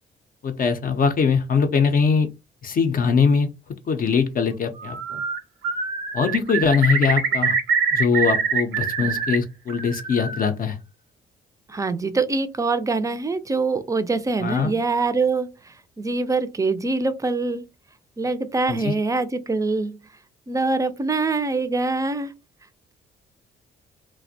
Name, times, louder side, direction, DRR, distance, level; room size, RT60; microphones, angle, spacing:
voice 1, 0.4-2.3 2.6-3.5 3.9-5.2 6.1-7.6 7.9-10.8 14.4-14.7 18.7-18.9, left 5 dB, 45° left, 0.5 m, -21 dB
Bird, 4.8-5.4 5.6-9.4 9.7-10.5, right 5 dB, 90° right, 0.7 m, -24 dB
voice 2, 11.7-15.5 16.0-17.6 18.2-20.0 20.5-22.3, right 3 dB, 15° right, 0.4 m, -24 dB
2.4 x 2.1 x 2.6 m
cardioid pair, 90°, 20 cm